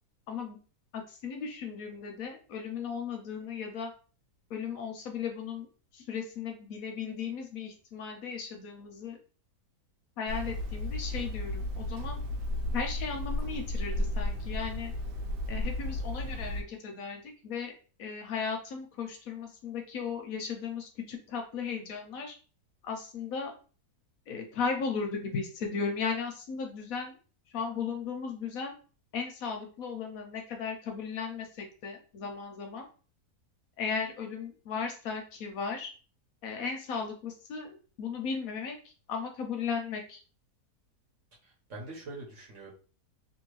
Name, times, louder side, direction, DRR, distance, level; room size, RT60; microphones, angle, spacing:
voice 1, 0.3-0.6 0.9-3.9 4.5-5.7 5.9-9.2 10.2-12.2 12.7-14.9 15.5-17.7 18.0-22.3 22.8-23.5 24.3-27.2 27.5-28.7 29.1-32.9 33.8-35.9 36.4-40.2, left 5 dB, 65° left, 4 dB, 1.0 m, -36 dB
Hammer, 10.3-16.6, left 1 dB, 90° right, 1.3 m, -33 dB
voice 2, 41.4-42.7, right 2 dB, 50° right, -4 dB, 1.2 m, -44 dB
2.8 x 2.7 x 3.0 m, 0.37 s
omnidirectional pair, 1.8 m